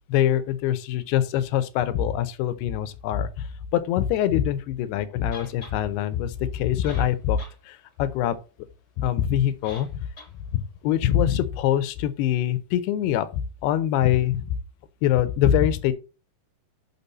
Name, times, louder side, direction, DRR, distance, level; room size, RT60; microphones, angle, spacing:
voice 1, 0.1-3.5 3.7-7.4 7.7-8.4 9.0-9.9 10.5-13.3 13.6-14.4 15.0-15.9, left 11 dB, 80° left, 2.6 m, -24 dB
sound 1, 5.3-5.8 6.6-6.7 6.8-7.6 7.9-8.0 9.6-9.9 10.2-10.3, left 3 dB, 30° left, 1.1 m, -42 dB
6.8 x 6.2 x 4.0 m
omnidirectional pair, 5.0 m